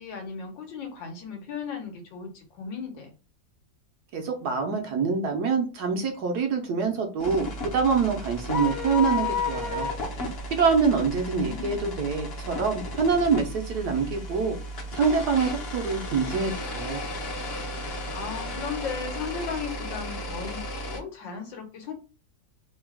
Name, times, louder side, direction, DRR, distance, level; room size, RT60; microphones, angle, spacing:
voice 1, 0.0-3.1 11.1-12.0 17.8-21.9, left 5 dB, 80° left, 2 dB, 1.8 m, -36 dB
voice 2, 4.1-7.5 7.7-9.9 10.5-14.6 14.9-17.0, right 5 dB, 65° right, 3 dB, 1.2 m, -25 dB
sound 1, 7.2-21.0, left 2 dB, 50° left, 0.8 m, -33 dB
3.8 x 2.3 x 3.5 m, 0.32 s
omnidirectional pair, 2.0 m